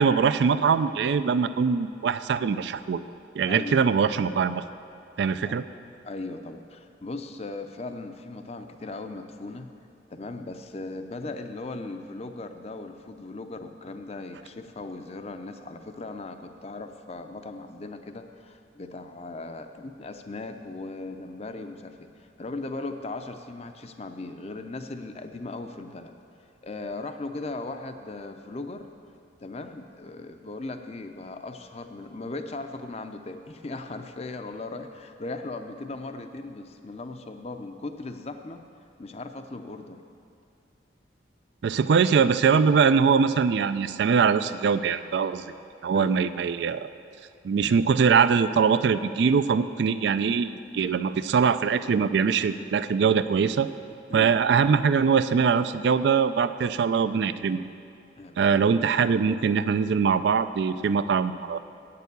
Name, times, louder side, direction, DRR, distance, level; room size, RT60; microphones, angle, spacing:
voice 1, 0.0-3.0 3.4-4.6 5.2-5.6 41.6-45.5 45.8-46.9 47.4-53.7 54.1-57.7 58.4-61.6, right 6 dB, 60° right, 13 dB, 0.3 m, -22 dB
voice 2, 3.5-3.8 5.4-5.6 6.0-9.7 10.1-26.1 26.6-28.9 29.4-38.6 39.0-40.0 45.9-46.3 54.1-54.4 58.2-58.6, left 2 dB, 35° left, 7 dB, 0.5 m, -38 dB
9.0 x 6.8 x 8.2 m, 2.5 s
head